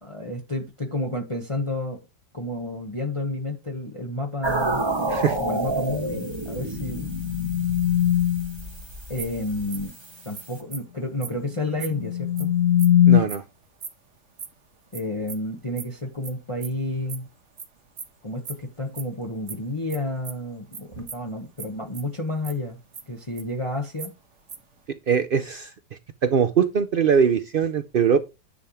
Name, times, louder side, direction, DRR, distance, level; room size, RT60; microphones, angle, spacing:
voice 1, 0.0-2.0 2.3-4.8 5.4-7.1 9.1-9.9 10.2-12.5 14.9-17.3 18.2-22.8 23.1-24.1, left 1 dB, 20° left, 1.2 m, -30 dB
sound 1, 4.4-10.6, right 2 dB, 20° right, 1.1 m, -30 dB
sound 2, 6.4-8.6 11.6-13.2, left 11 dB, 55° left, 1.3 m, -21 dB
sound 3, 8.6-8.7 9.2-9.4 9.7-9.9 10.3-10.4 10.7-10.8 11.2-11.3 11.8-11.9 12.4-12.5 12.8-12.9 13.3-13.4 13.8-13.9 14.4-14.5 14.9-15.0 15.3-15.4 15.8-15.9 16.2-16.3 16.6-16.8 17.1-17.6 18.0-18.1 18.4-18.5 18.8-19.0 19.5-19.6 19.9-20.0 20.2-20.4 20.7-20.8 21.1-21.3 21.6-21.7 21.9-22.5 22.9-23.7 24.0-24.8, right 6 dB, 50° right, 1.4 m, -37 dB
voice 2, 13.1-13.4 25.1-25.7 26.2-28.2, right 7 dB, 90° right, 0.4 m, -21 dB
10.0 x 3.4 x 7.1 m
omnidirectional pair, 1.8 m